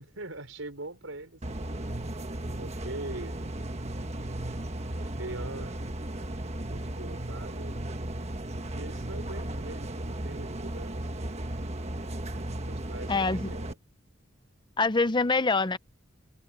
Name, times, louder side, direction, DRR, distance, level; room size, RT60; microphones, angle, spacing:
voice 1, 0.0-1.4 2.6-3.4 4.9-5.8 6.5-7.8 8.7-11.2 12.6-13.7, right 2 dB, 90° right, 5.0 m, -42 dB
sound 1, 1.4-13.7, right 1 dB, 35° right, 1.4 m, -35 dB
voice 2, 13.1-13.5 14.8-15.8, left 3 dB, 25° left, 0.6 m, -25 dB
head